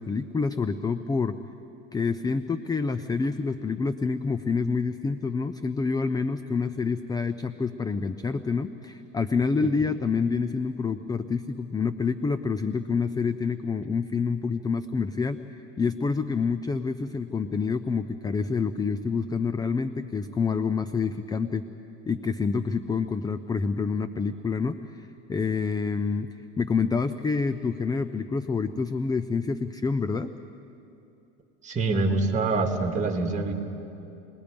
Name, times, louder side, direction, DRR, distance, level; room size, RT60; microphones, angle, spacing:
voice 1, 0.0-1.3 1.9-15.4 15.8-21.6 22.1-26.3 26.6-30.3, left 5 dB, 10° left, 12 dB, 0.4 m, -27 dB
voice 2, 31.6-33.5, right 3 dB, 20° right, 4 dB, 2.2 m, -25 dB
28.5 x 20.0 x 5.2 m, 2.8 s
supercardioid pair, 110°, 34 cm